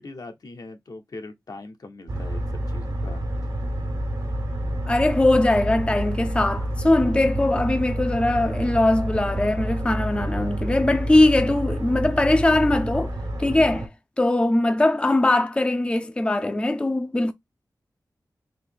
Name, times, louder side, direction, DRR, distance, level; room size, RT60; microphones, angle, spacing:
voice 1, 0.0-3.2, left 2 dB, 65° left, 0.8 m, -41 dB
sound 1, 2.1-13.9, right 1 dB, 80° right, 1.2 m, -28 dB
voice 2, 4.9-13.9 14.2-17.3, left 2 dB, 15° left, 0.4 m, -21 dB
3.9 x 2.6 x 3.8 m
wide cardioid pair, 60°, 7 cm